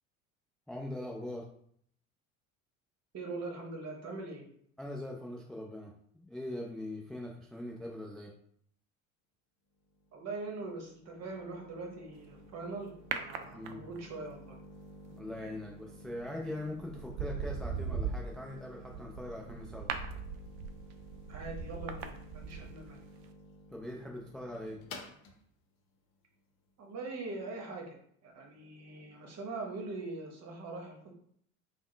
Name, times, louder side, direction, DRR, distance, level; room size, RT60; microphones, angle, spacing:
voice 1, 0.7-1.4 4.8-8.3 13.5-13.8 15.1-19.9 23.7-24.8, left 1 dB, ahead, -1 dB, 0.3 m, -41 dB
voice 2, 3.1-4.4 10.1-14.5 21.3-23.0 26.8-28.0 28.2-31.1, right 3 dB, 40° right, 1 dB, 1.0 m, -42 dB
sound 1, 9.8-27.4, left 1 dB, 55° left, 0.8 m, -53 dB
sound 2, 13.1-14.1 16.0-16.3 16.8-23.0 23.2-23.3, right 6 dB, 55° right, 0.5 m, -39 dB
3.5 x 2.1 x 3.2 m, 0.65 s
hypercardioid pair, 65°, 41 cm